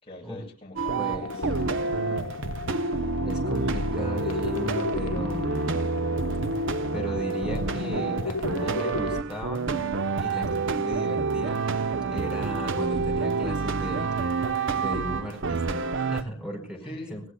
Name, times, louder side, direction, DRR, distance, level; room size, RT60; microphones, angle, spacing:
voice 1, 0.0-2.2 3.5-3.8 16.8-17.2, left 1 dB, 25° left, -2 dB, 7.4 m, -43 dB
sound 1, 0.8-16.2, right 4 dB, 55° right, 0.9 m, -28 dB
voice 2, 0.9-1.3 3.2-5.8 6.9-9.7 10.2-14.1 14.7-17.2, equal, 5° right, 2 dB, 4.7 m, -36 dB
sound 2, 1.2-9.2, left 4 dB, 90° left, 0.8 m, -36 dB
29.0 x 17.5 x 2.3 m, 0.36 s
head